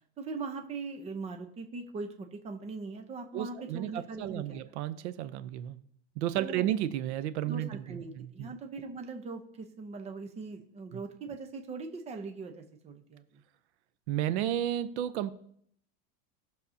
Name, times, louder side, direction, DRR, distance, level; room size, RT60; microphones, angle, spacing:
voice 1, 0.2-4.6 6.4-6.7 7.5-13.4, right 4 dB, 20° right, 5 dB, 0.8 m, -41 dB
voice 2, 3.3-5.8 6.2-8.5 10.9-11.0 14.1-15.3, right 12 dB, 85° right, 12 dB, 0.8 m, -33 dB
18.0 x 6.6 x 2.8 m, 0.65 s
supercardioid pair, 165°, 33 cm